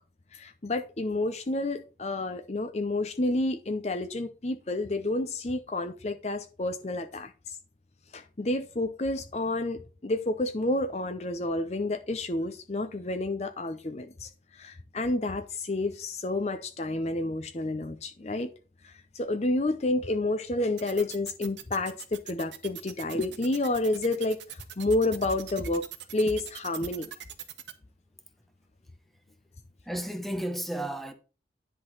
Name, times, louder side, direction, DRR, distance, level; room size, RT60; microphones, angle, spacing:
voice 1, 0.3-7.6 8.1-18.5 18.8-25.9 26.1-27.1, left 2 dB, 35° left, 0.6 m, -30 dB
sound 1, 20.8-27.7, right 11 dB, 80° right, 1.1 m, -42 dB
voice 2, 29.8-31.1, right 1 dB, ahead, 1.0 m, -33 dB
10.5 x 3.9 x 6.4 m
head